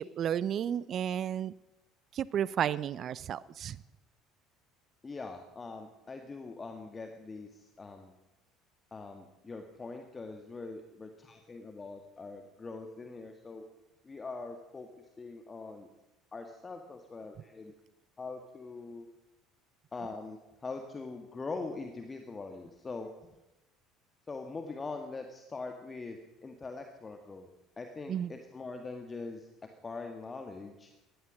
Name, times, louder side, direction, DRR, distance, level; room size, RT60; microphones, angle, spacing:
voice 1, 0.0-1.5 2.1-3.8 28.1-28.3, right 9 dB, 45° right, 21 dB, 0.5 m, -32 dB
voice 2, 5.0-8.1 8.9-13.6 14.0-14.9 15.2-15.9 16.3-17.7 18.2-19.1 19.9-23.1 24.3-27.5 27.8-29.5 29.8-30.9, left 3 dB, 25° left, 5 dB, 1.7 m, -42 dB
17.0 x 12.5 x 6.4 m, 1.0 s
figure-of-eight pair, 60°, 0 cm